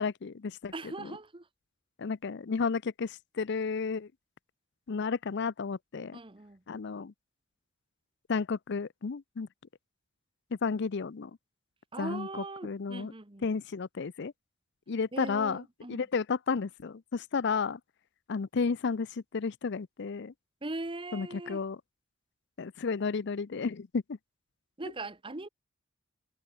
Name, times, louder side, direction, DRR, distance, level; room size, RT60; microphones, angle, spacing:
voice 1, 0.0-0.7 2.0-4.1 4.9-6.2 6.7-7.1 8.3-9.5 10.5-11.3 12.0-13.1 13.4-14.3 14.9-15.6 15.9-17.8 18.3-20.3 21.1-21.8 22.6-24.2, left 5 dB, 60° left, 0.5 m, -32 dB
voice 2, 0.7-1.5 6.1-6.6 11.9-13.5 15.1-16.0 20.6-21.6 24.8-25.5, right 2 dB, 25° right, 1.3 m, -40 dB
head